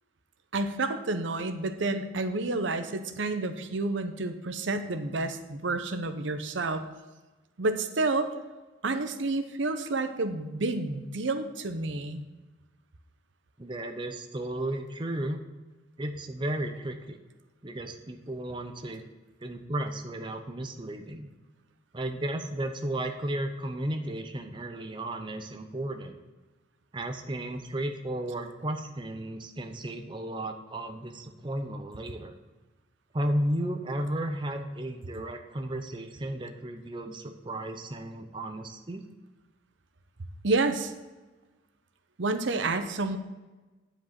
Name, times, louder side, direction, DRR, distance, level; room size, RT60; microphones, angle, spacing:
voice 1, 0.5-6.8 7.6-8.3 8.8-12.2 40.4-40.9 42.2-43.2, right 2 dB, 85° right, 9 dB, 0.8 m, -29 dB
voice 2, 13.6-15.4 16.0-17.2 17.6-19.0 19.4-21.3 21.9-26.2 26.9-32.3 33.1-39.0, right 1 dB, 25° right, 5 dB, 0.6 m, -34 dB
9.7 x 5.2 x 5.9 m, 1.2 s
head